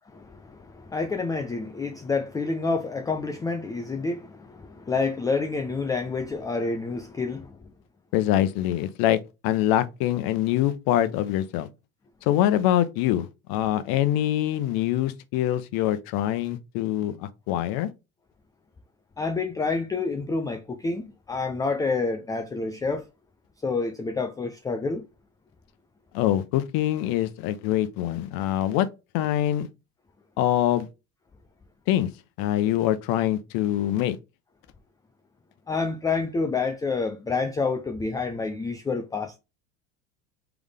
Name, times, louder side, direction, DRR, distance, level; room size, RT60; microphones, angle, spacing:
voice 1, 0.1-7.7 19.2-23.1 23.6-25.1 35.7-39.4, left 4 dB, 10° left, 0.3 m, -28 dB
voice 2, 8.1-11.7 12.2-17.9 26.1-28.9 29.1-29.7 30.4-30.9 31.9-32.1 32.4-34.2, left 12 dB, 60° left, 0.7 m, -24 dB
3.7 x 3.5 x 3.4 m
hypercardioid pair, 90°, 41 cm